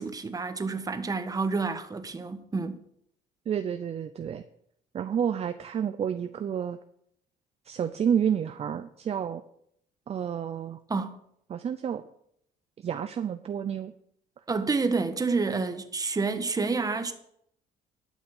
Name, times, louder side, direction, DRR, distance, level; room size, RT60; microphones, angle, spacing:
voice 1, 0.0-2.8 10.9-11.2 14.5-17.1, right 4 dB, 20° right, 1.3 m, -29 dB
voice 2, 3.5-4.4 4.9-6.8 7.6-9.4 10.1-10.8 11.5-12.0 12.8-13.9, right 8 dB, 40° right, 0.6 m, -30 dB
11.5 x 6.5 x 7.1 m
cardioid pair, 110°, 17 cm